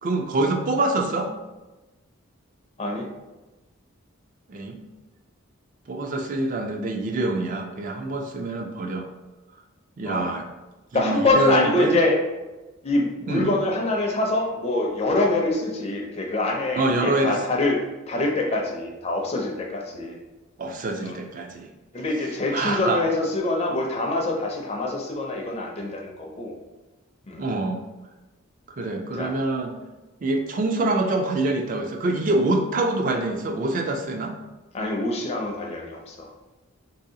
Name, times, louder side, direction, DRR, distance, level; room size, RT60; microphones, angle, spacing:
voice 1, 0.0-1.3 4.5-4.8 5.9-9.1 10.0-10.5 10.9-12.0 13.3-13.5 16.8-17.4 20.6-21.7 22.5-23.0 27.4-27.8 28.8-29.7 30.2-34.3, right 2 dB, 40° right, 4 dB, 0.4 m, -25 dB
voice 2, 10.9-12.2 12.8-17.8 18.1-20.2 21.0-21.2 21.9-26.5 27.3-27.4 29.1-29.3 34.7-36.3, left 2 dB, 30° left, 1 dB, 0.4 m, -25 dB
3.8 x 2.7 x 2.6 m, 1.1 s
head